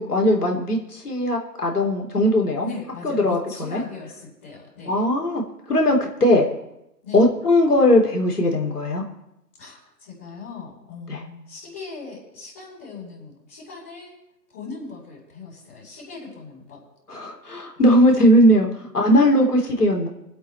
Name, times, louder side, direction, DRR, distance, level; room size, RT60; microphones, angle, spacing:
voice 1, 0.0-2.7 3.0-3.8 4.9-5.4 5.7-6.5 7.1-9.0 11.1-11.2 17.1-20.1, left 1 dB, 65° left, 0 dB, 3.7 m, -19 dB
voice 2, 2.6-5.0 7.0-7.3 9.6-14.1 14.5-16.8, left 4 dB, 10° left, -14 dB, 3.0 m, -39 dB
24.0 x 8.2 x 4.6 m, 0.85 s
hypercardioid pair, 180°, 49 cm